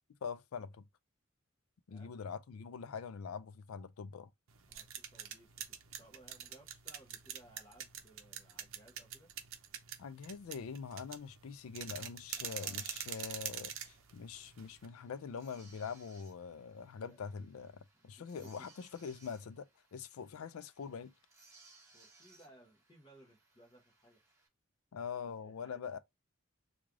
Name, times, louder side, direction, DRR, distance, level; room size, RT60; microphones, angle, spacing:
voice 1, 0.2-0.9 1.9-4.3 10.0-21.1 24.9-26.0, left 6 dB, 80° left, 0.4 m, -44 dB
sound 1, 4.5-14.9, right 9 dB, 70° right, 0.6 m, -45 dB
voice 2, 4.6-9.3 12.3-13.1 14.8-14.9 17.0-17.2 17.9-18.7 21.9-24.2 25.3-26.0, right 1 dB, 20° left, 0.8 m, -62 dB
sound 2, 12.4-24.5, right 3 dB, 15° right, 1.0 m, -65 dB
3.2 x 2.3 x 3.6 m
head